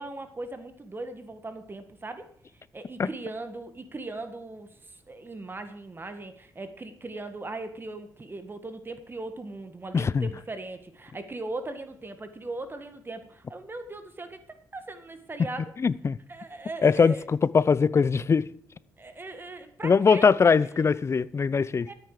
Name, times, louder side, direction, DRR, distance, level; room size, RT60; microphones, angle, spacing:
voice 1, 0.0-2.3 2.7-14.4 14.7-15.7 16.3-17.2 19.0-20.5 20.8-20.9 21.9-22.0, right 2 dB, 30° right, 1.7 m, -39 dB
voice 2, 9.9-10.3 15.8-16.2 16.8-18.5 19.8-21.9, left 5 dB, 40° left, 0.6 m, -21 dB
13.5 x 9.2 x 4.9 m
supercardioid pair, 60°, 7 cm